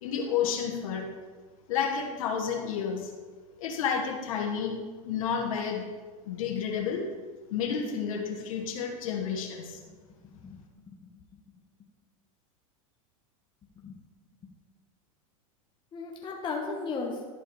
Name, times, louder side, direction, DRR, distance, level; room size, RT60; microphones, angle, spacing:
voice 1, 0.0-1.0 1.7-3.1 3.6-4.8 5.0-5.9 6.2-7.0 7.5-9.8, left 7 dB, 75° left, 0 dB, 1.5 m, -30 dB
voice 2, 10.2-11.1 13.8-14.0 15.9-17.3, left 4 dB, 25° left, 0 dB, 1.2 m, -36 dB
11.0 x 4.6 x 4.7 m, 1.4 s
hypercardioid pair, 115°, 18 cm